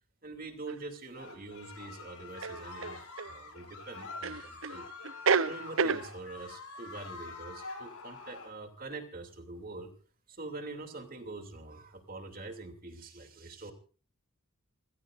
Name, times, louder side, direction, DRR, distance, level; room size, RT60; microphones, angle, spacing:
voice 1, 0.2-4.9 5.4-9.9 10.3-13.7, right 3 dB, 40° right, 6 dB, 2.9 m, -44 dB
sound 1, 0.7-0.8 2.4-3.3 4.2-4.8 5.0-6.1, right 5 dB, 65° right, 0.7 m, -29 dB
sound 2, 1.1-8.5, left 4 dB, 85° left, 6.1 m, -46 dB
29.5 x 16.0 x 2.6 m, 0.37 s
head